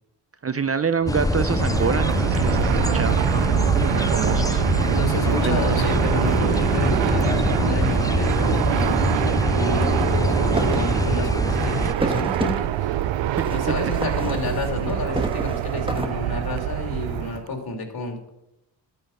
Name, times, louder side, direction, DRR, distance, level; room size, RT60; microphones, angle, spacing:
voice 1, 0.4-3.2 3.7-4.6 5.3-5.7 13.4-13.5, right 6 dB, 35° right, 12 dB, 0.7 m, -26 dB
sound 1, 1.1-11.9, left 2 dB, 10° left, 0.4 m, -24 dB
Fixed-wing aircraft airplane, 1.1-17.5, right 13 dB, 85° right, 0.6 m, -24 dB
voice 2, 4.9-9.1 9.5-13.0 13.5-18.3, left 2 dB, 55° left, 2 dB, 3.0 m, -30 dB
sound 2, 10.5-10.9 11.3-12.6 13.3-14.9 15.1-16.1, right 1 dB, 10° right, 1.4 m, -30 dB
12.0 x 5.5 x 7.2 m, 0.90 s
cardioid pair, 65°, 43 cm